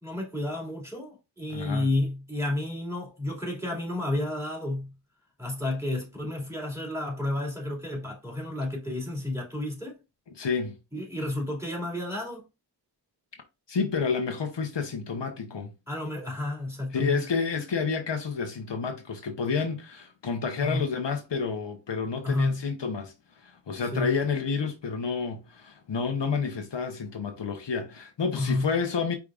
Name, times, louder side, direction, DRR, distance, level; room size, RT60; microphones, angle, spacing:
voice 1, 0.0-4.9 5.4-9.9 10.9-12.4 15.9-17.2 20.6-20.9 22.2-22.7 23.9-24.1 28.4-28.7, left 2 dB, 5° right, 2.3 m, -31 dB
voice 2, 1.5-1.9 10.3-10.8 13.7-15.7 16.9-23.1 23.4-29.2, left 5 dB, 75° left, 0.9 m, -29 dB
4.9 x 3.6 x 2.4 m
wide cardioid pair, 45°, 43 cm